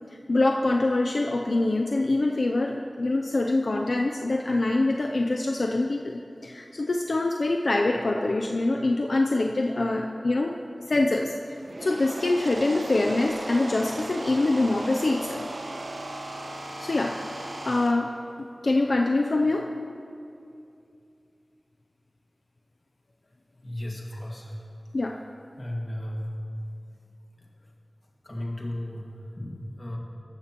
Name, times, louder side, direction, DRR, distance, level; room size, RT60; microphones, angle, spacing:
voice 1, 0.3-10.5 10.9-11.3 11.8-15.5 16.8-17.2 17.6-18.1 18.4-19.7 24.9-25.2, left 2 dB, 75° left, 2 dB, 0.5 m, -24 dB
sound 1, 11.5-17.9, right 1 dB, 85° right, 1.1 m, -37 dB
voice 2, 23.6-24.5 25.6-26.4 28.2-30.0, left 1 dB, 45° left, -2 dB, 1.9 m, -35 dB
14.0 x 13.0 x 3.0 m, 2.6 s
wide cardioid pair, 65°, 0 cm